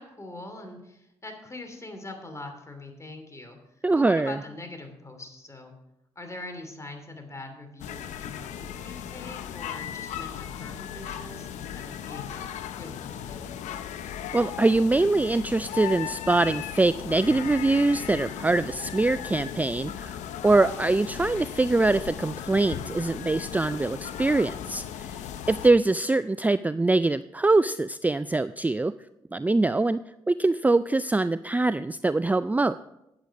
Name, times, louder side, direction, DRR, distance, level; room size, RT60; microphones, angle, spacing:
voice 1, 0.0-3.6 3.9-5.7 6.1-12.4 12.8-13.5, left 2 dB, 25° left, 5 dB, 2.8 m, -42 dB
voice 2, 3.8-4.4 14.3-20.2 20.4-25.2 25.5-28.9 29.3-30.0 30.3-32.8, right 2 dB, 15° right, 14 dB, 0.3 m, -23 dB
sound 1, 7.8-25.7, left 9 dB, 85° left, 0.6 m, -37 dB
10.5 x 8.0 x 4.8 m, 0.86 s
supercardioid pair, 50°, 12 cm